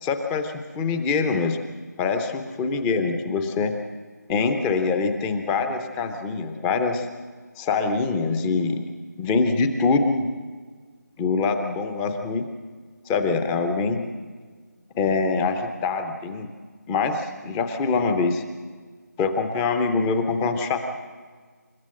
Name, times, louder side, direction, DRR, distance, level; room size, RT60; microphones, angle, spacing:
voice 1, 0.0-1.6 2.0-3.7 4.3-7.1 7.6-8.8 9.2-10.3 11.2-12.4 13.1-14.0 15.0-16.5 16.9-18.4 19.2-21.0, left 4 dB, 5° left, 7 dB, 0.6 m, -24 dB
29.0 x 14.0 x 7.6 m, 1.6 s
figure-of-eight pair, 165°, 10 cm